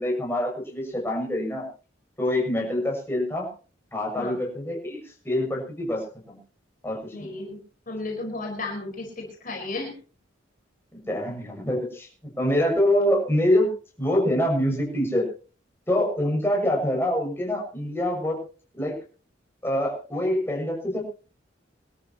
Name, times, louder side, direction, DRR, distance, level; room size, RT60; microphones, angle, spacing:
voice 1, 0.0-1.7 2.2-3.5 3.9-5.0 5.3-6.4 6.8-7.3 10.9-12.1 12.4-13.7 14.0-15.3 15.9-18.4 18.8-19.0 19.6-21.0, left 1 dB, 10° left, -1 dB, 6.9 m, -25 dB
voice 2, 7.1-7.6 7.9-9.9, left 2 dB, 45° left, 1 dB, 5.2 m, -33 dB
25.0 x 13.5 x 3.0 m, 0.37 s
head